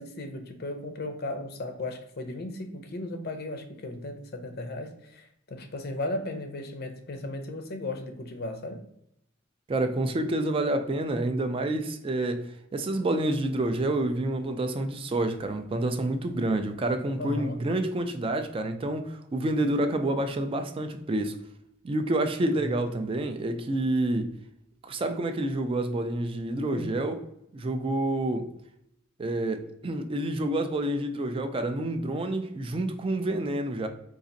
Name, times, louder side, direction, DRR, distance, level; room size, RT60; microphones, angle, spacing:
voice 1, 0.0-8.8 17.2-17.6 22.6-22.7 26.7-26.9, left 2 dB, 50° left, 0.5 m, -36 dB
voice 2, 9.7-21.4 21.8-24.3 24.8-27.2 27.5-28.5 29.2-33.9, right 1 dB, 25° right, 0.3 m, -28 dB
4.0 x 2.4 x 2.6 m
head